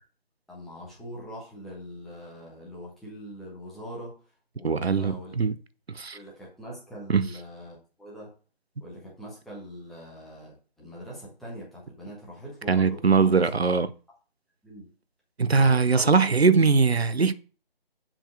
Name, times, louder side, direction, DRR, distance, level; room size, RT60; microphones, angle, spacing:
voice 1, 0.5-4.1 4.5-5.3 6.1-8.3 8.8-13.3 14.6-14.9 15.5-16.1, equal, ahead, 1.2 m, -42 dB
voice 2, 4.6-5.6 5.9-6.2 7.1-7.3 12.7-13.9 15.4-17.3, right 4 dB, 90° right, 0.9 m, -21 dB
7.3 x 5.4 x 6.5 m
figure-of-eight pair, 155°, 31 cm